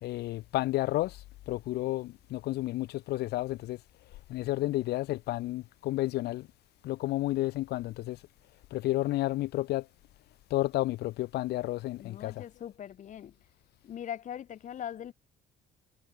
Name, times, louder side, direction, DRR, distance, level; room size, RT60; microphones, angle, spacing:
voice 1, 0.0-3.8 4.3-6.5 6.8-8.2 8.7-9.9 10.5-12.4, left 17 dB, 75° left, 0.8 m, -31 dB
voice 2, 12.0-13.3 13.8-15.1, left 10 dB, 45° left, 1.0 m, -41 dB
cardioid pair, 110°, 17 cm